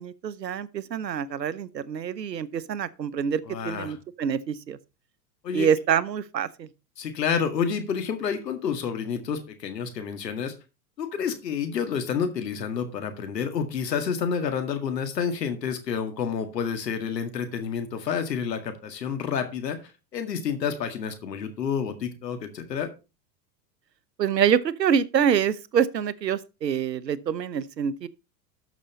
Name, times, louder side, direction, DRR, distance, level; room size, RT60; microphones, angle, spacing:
voice 1, 0.0-4.8 5.5-6.7 24.2-28.1, right 8 dB, 90° right, 0.8 m, -26 dB
voice 2, 3.5-4.0 5.4-5.7 7.0-10.5 11.0-19.8 20.1-22.9, left 7 dB, 80° left, 2.0 m, -29 dB
12.5 x 6.2 x 4.2 m
hypercardioid pair, 90°, 49 cm